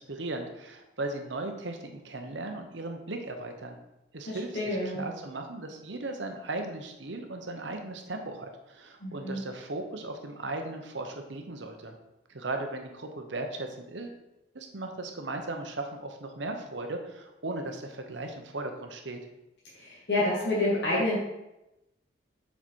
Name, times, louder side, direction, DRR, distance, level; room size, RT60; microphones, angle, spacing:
voice 1, 0.0-3.8 4.1-12.0 12.3-14.2 14.5-19.2, right 2 dB, 80° right, 4 dB, 1.1 m, -37 dB
voice 2, 4.3-5.0 9.0-9.4 19.8-21.2, left 1 dB, 65° left, -7 dB, 2.1 m, -28 dB
7.2 x 5.8 x 4.6 m, 0.93 s
head